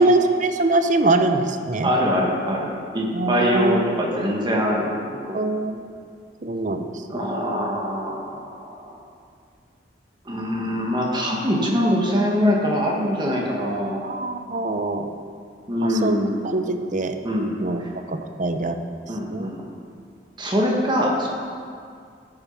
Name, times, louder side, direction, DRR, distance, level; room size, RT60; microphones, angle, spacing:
voice 1, 0.0-1.9 3.1-3.8 5.3-5.9 6.4-6.9 14.0-15.1 15.8-16.2 16.4-17.2 17.6-17.8 18.1-18.8 19.3-19.5, right 2 dB, 45° right, 7 dB, 0.7 m, -22 dB
voice 2, 1.8-5.4 7.1-9.0 10.2-14.0 15.7-16.3 17.2-17.5 17.8-17.9 19.1-19.7 20.4-21.3, equal, 25° right, -2 dB, 1.7 m, -23 dB
13.0 x 7.0 x 5.7 m, 2.3 s
head